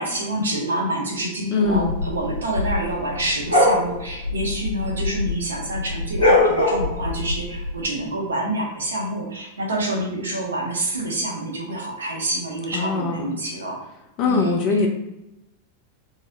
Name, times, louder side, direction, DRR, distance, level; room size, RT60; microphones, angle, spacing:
voice 1, 0.0-13.8 14.2-14.9, right 1 dB, 70° right, -1 dB, 0.8 m, -27 dB
voice 2, 1.5-1.9 12.7-13.2 14.2-14.9, left 4 dB, 40° left, 2 dB, 0.5 m, -21 dB
sound 1, 1.7-5.4 5.7-7.7, left 2 dB, 75° left, 1.2 m, -21 dB
3.7 x 2.0 x 2.7 m, 0.90 s
figure-of-eight pair, 90°, 0 cm